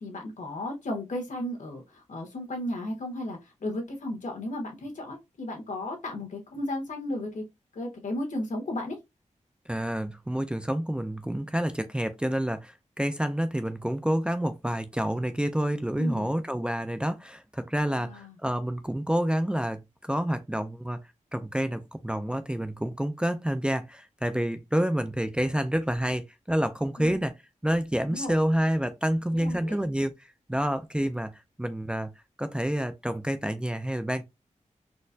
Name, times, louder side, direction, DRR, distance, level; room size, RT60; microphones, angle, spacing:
voice 1, 0.0-7.4 7.7-9.0 16.0-16.3 17.9-18.4 27.0-27.1 28.1-28.4 29.3-29.8, left 1 dB, 80° left, 1.3 m, -34 dB
voice 2, 9.7-21.0 21.3-27.4 27.6-31.3 31.6-32.1 32.4-34.3, equal, 10° right, 0.4 m, -28 dB
4.2 x 2.1 x 2.6 m
wide cardioid pair, 120°, 13 cm